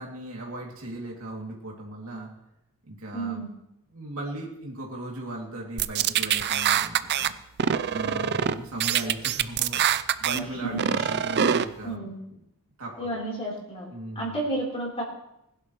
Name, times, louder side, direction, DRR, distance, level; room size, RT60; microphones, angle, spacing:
voice 1, 0.0-2.3 2.9-3.4 3.9-7.3 7.9-12.4 12.8-13.2 13.9-14.4, right 1 dB, 70° right, -2 dB, 2.6 m, -37 dB
voice 2, 3.1-3.5 10.3-11.1 11.8-12.2 13.0-13.9 14.2-15.0, right 2 dB, 30° left, -4 dB, 3.6 m, -32 dB
sound 1, 5.8-7.3 7.6-8.5 8.8-10.4 10.8-11.6, right 9 dB, 50° right, 0.5 m, -24 dB
20.5 x 11.5 x 3.1 m, 0.82 s
head